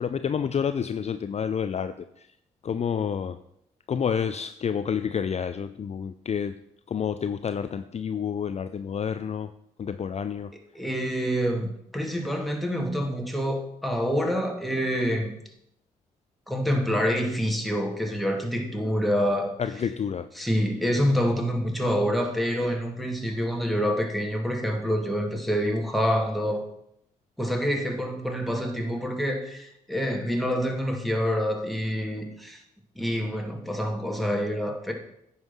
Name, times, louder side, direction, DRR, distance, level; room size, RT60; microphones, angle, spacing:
voice 1, 0.0-2.3 2.6-3.4 3.9-6.6 6.9-9.5 9.8-10.5 19.6-20.3, left 7 dB, 40° left, 11 dB, 0.5 m, -29 dB
voice 2, 10.7-15.3 16.5-19.6 20.4-26.6 27.4-32.6 33.0-34.9, equal, ahead, 1 dB, 2.5 m, -27 dB
9.4 x 5.6 x 6.1 m, 0.76 s
hypercardioid pair, 50°, 17 cm